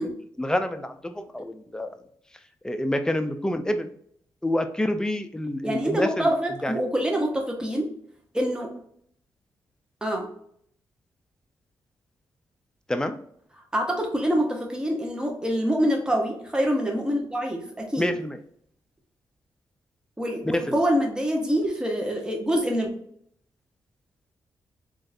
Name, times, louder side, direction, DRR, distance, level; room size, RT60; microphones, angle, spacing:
voice 1, 0.0-1.9 2.6-3.9 4.4-6.3 6.6-6.8 12.9-13.2 18.0-18.4 20.7-20.8, left 1 dB, 5° left, 8 dB, 0.5 m, -28 dB
voice 2, 5.6-7.9 8.3-8.7 10.0-10.3 13.7-18.1 20.2-22.9, equal, 10° right, 1 dB, 1.0 m, -25 dB
3.7 x 2.5 x 2.6 m, 0.65 s
supercardioid pair, 45°, 9 cm